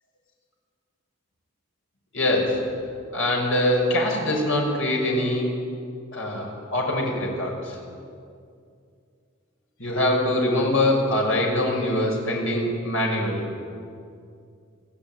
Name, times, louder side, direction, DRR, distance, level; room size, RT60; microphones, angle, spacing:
voice 1, 2.1-2.6 3.1-5.5 6.1-7.8 9.8-13.4, left 1 dB, 70° left, 0 dB, 6.2 m, -23 dB
26.0 x 16.5 x 9.1 m, 2.4 s
head